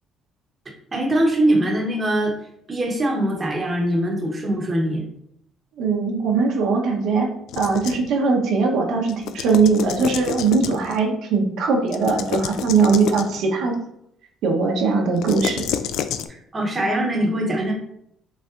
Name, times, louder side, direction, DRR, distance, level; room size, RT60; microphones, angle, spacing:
voice 1, 0.9-2.3 2.7-5.0 16.3-17.7, right 1 dB, 25° right, 0 dB, 0.8 m, -22 dB
voice 2, 5.8-7.3 7.6-13.7 14.4-15.6, right 4 dB, 75° right, 0 dB, 0.9 m, -20 dB
sound 1, 7.5-8.1 9.1-11.0 11.9-13.4 15.2-16.3, left 9 dB, 80° left, 0.3 m, -29 dB
5.4 x 3.5 x 2.4 m, 0.73 s
cardioid pair, 125°, 0 cm